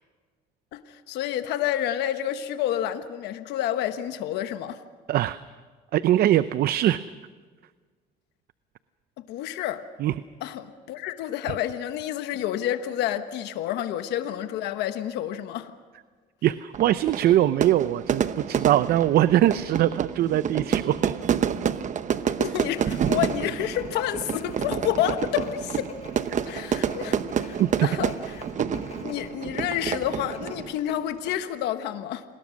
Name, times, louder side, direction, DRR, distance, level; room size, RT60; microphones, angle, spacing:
voice 1, 0.7-4.8 9.2-9.8 10.4-15.7 22.2-25.9 26.4-28.3 29.0-32.2, left 11 dB, 85° left, 9 dB, 1.2 m, -29 dB
voice 2, 5.9-7.0 10.0-10.1 16.4-21.1 27.6-27.9, right 13 dB, 65° right, 14 dB, 0.6 m, -22 dB
Fire / Fireworks, 16.7-30.8, right 8 dB, 45° right, 0.9 m, -29 dB
sound 1, 22.7-29.3 29.6-29.8 30.3-31.4, left 4 dB, 40° left, 4.6 m, -44 dB
28.5 x 20.0 x 6.4 m, 1.5 s
cardioid pair, 110°, 17 cm